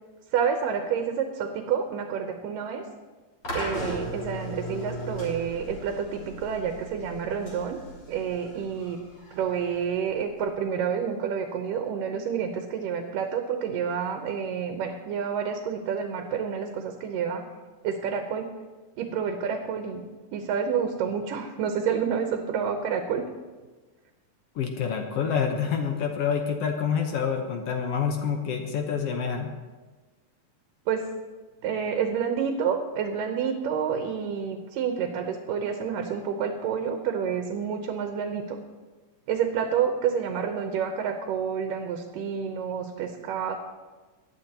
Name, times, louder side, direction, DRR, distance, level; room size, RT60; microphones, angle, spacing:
voice 1, 0.3-2.9 3.5-7.8 8.1-9.0 9.3-17.4 17.8-18.5 19.0-20.0 20.3-23.3 30.9-31.1 31.6-38.6 39.3-43.6, right 7 dB, 90° right, 4 dB, 2.5 m, -29 dB
sound 1, 3.4-10.5, equal, 40° left, 4.0 m, -37 dB
voice 2, 24.5-29.5, left 7 dB, 65° left, 3 dB, 1.6 m, -27 dB
18.5 x 11.5 x 2.9 m, 1.3 s
omnidirectional pair, 3.7 m